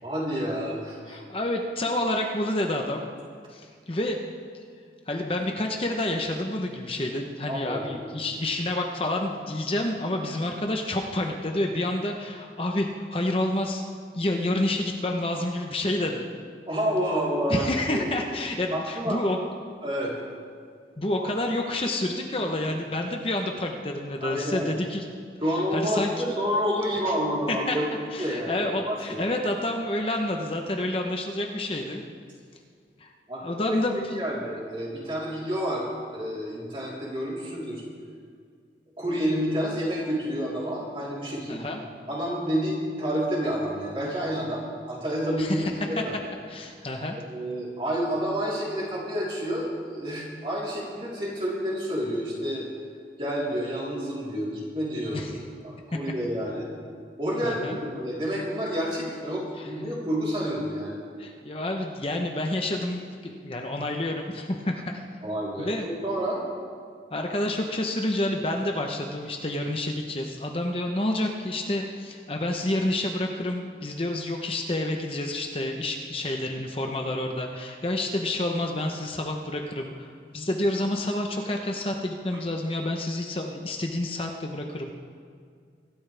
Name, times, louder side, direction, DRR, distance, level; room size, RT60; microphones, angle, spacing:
voice 1, 0.0-1.2 7.5-8.1 16.7-17.6 17.9-18.1 18.7-19.2 19.8-20.1 24.2-24.7 25.4-27.9 28.2-29.2 33.3-33.8 34.2-35.8 36.1-37.8 39.0-41.7 42.1-46.1 47.2-52.7 53.2-55.3 55.6-56.7 57.2-60.9 65.2-66.4, equal, 30° right, -6 dB, 3.7 m, -29 dB
voice 2, 1.1-3.0 3.5-4.2 5.1-13.8 14.1-16.3 17.5-19.4 21.0-25.0 25.5-26.1 27.0-27.1 27.5-27.8 28.1-32.0 33.0-33.1 33.4-34.2 41.5-41.8 45.4-46.0 46.5-47.2 55.1-55.3 57.4-57.8 59.6-59.7 61.2-65.0 65.6-65.9 67.1-84.9, left 1 dB, 30° left, 2 dB, 0.8 m, -29 dB
24.0 x 12.5 x 3.4 m, 2.1 s
head